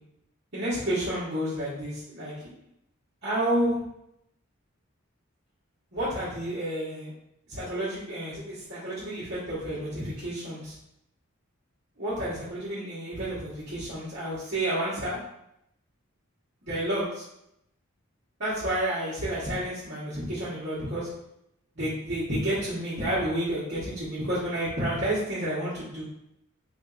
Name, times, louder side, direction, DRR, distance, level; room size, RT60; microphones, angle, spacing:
voice 1, 0.5-2.5 3.2-3.8 5.9-7.1 7.5-10.7 12.0-15.2 16.6-17.2 18.4-21.1 21.7-26.0, right 1 dB, 55° right, -12 dB, 1.3 m, -30 dB
3.5 x 2.6 x 3.9 m, 0.79 s
head